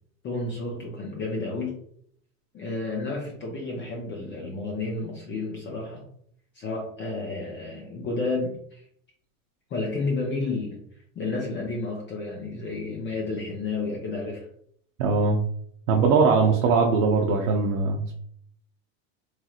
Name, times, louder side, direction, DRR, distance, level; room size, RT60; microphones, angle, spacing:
voice 1, 0.2-1.8 2.5-6.0 6.5-8.8 9.7-10.8 11.1-14.5, left 3 dB, 30° left, -2 dB, 0.6 m, -31 dB
voice 2, 15.0-15.4 15.9-18.1, right 4 dB, 85° right, 0 dB, 0.6 m, -21 dB
3.2 x 2.8 x 2.4 m, 0.66 s
supercardioid pair, 130°, 40 cm